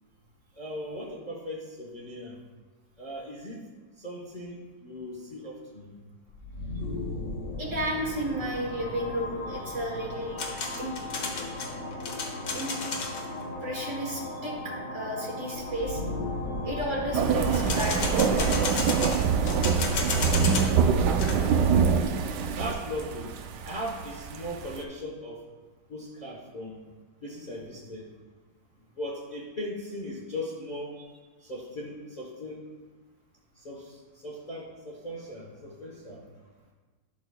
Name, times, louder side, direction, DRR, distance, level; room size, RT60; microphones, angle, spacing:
voice 1, 0.6-2.4 3.0-3.7 4.0-6.0 21.4-21.7 22.6-23.3 23.6-25.4 25.9-26.8 27.2-28.1 29.0-31.0 31.4-32.6 33.6-36.3, left 1 dB, 30° left, -4 dB, 0.9 m, -38 dB
sound 1, 6.3-24.0, left 2 dB, 50° left, 1.2 m, -38 dB
voice 2, 7.6-11.7 12.5-12.7 13.6-16.0 16.6-18.9, right 1 dB, 45° right, -1 dB, 1.5 m, -33 dB
sound 2, 10.4-13.3 17.5-20.8 21.0-21.4, left 4 dB, 70° left, 1.6 m, -33 dB
sound 3, 17.1-24.8, right 6 dB, 70° right, 1.2 m, -25 dB
12.0 x 6.2 x 2.2 m, 1.3 s
omnidirectional pair, 1.9 m